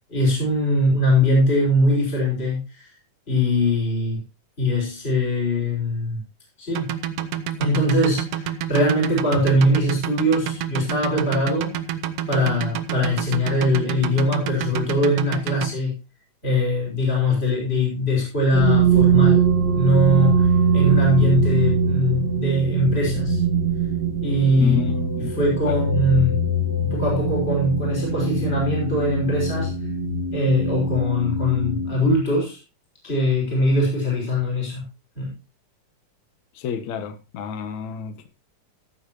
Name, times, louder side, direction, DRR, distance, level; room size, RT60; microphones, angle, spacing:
voice 1, 0.1-2.9 3.3-4.2 4.6-6.2 6.6-6.9 7.6-11.7 12.3-15.9 16.4-19.5 19.7-20.5 20.7-23.4 24.2-24.8 25.3-26.4 26.8-29.7 30.3-32.6 33.0-34.8 35.2-35.3, left 1 dB, 15° left, -3 dB, 5.9 m, -21 dB
sound 1, 6.7-15.7, right 10 dB, 80° right, 1.4 m, -28 dB
sound 2, 18.5-32.1, right 4 dB, 40° right, 2.2 m, -22 dB
voice 2, 24.6-25.3 25.7-25.8 36.5-38.3, left 5 dB, 65° left, 9 dB, 2.4 m, -30 dB
16.0 x 9.1 x 3.0 m, 0.29 s
omnidirectional pair, 3.8 m